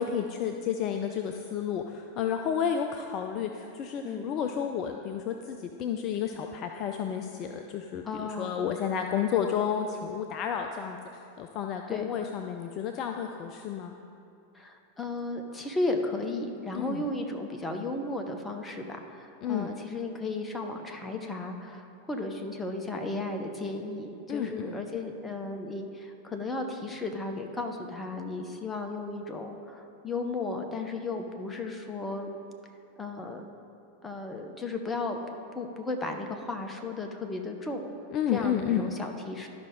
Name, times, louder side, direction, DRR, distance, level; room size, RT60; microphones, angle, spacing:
voice 1, 0.0-14.0 16.7-17.0 19.4-19.7 24.3-24.8 38.1-38.9, left 8 dB, 35° left, 4 dB, 0.4 m, -31 dB
voice 2, 8.0-8.5 11.9-12.1 14.5-32.3 33.0-33.5 34.0-35.2 35.5-37.9 38.3-39.5, left 2 dB, 15° left, 4 dB, 0.8 m, -34 dB
12.0 x 5.3 x 3.6 m, 2.6 s
figure-of-eight pair, 90°, 0 cm